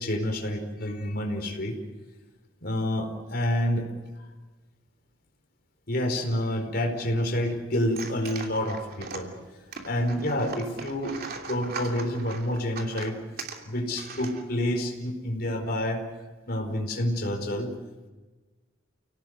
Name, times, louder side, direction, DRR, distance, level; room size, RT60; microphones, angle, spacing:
voice 1, 0.0-1.7 2.6-3.8 5.9-9.3 9.8-11.2 11.5-13.2 13.6-16.0 16.5-17.7, left 1 dB, 50° left, 2 dB, 4.9 m, -28 dB
sound 1, 7.8-14.8, right 4 dB, 50° right, 2.9 m, -40 dB
30.0 x 18.5 x 8.2 m, 1.2 s
head